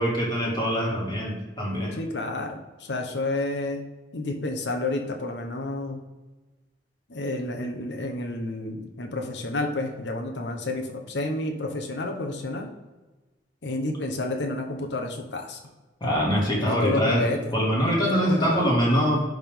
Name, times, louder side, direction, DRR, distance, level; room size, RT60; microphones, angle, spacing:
voice 1, 0.0-2.0 16.0-17.2 17.5-19.2, equal, 25° left, -4 dB, 2.3 m, -24 dB
voice 2, 2.0-2.6 2.9-3.8 4.1-6.0 7.1-12.7 13.6-15.6 16.6-17.4 18.0-18.7, left 2 dB, 80° left, 3 dB, 1.0 m, -30 dB
10.5 x 3.6 x 3.7 m, 1.2 s
head